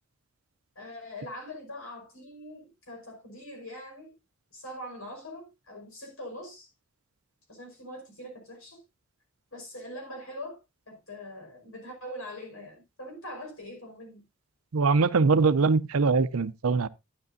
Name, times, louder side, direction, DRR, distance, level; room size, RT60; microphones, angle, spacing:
voice 1, 0.8-4.2 4.5-6.7 7.5-8.8 9.5-10.6 10.9-14.3, left 1 dB, 85° left, 5.2 m, -42 dB
voice 2, 14.7-16.9, right 4 dB, 90° right, 0.6 m, -22 dB
12.0 x 9.6 x 2.6 m
head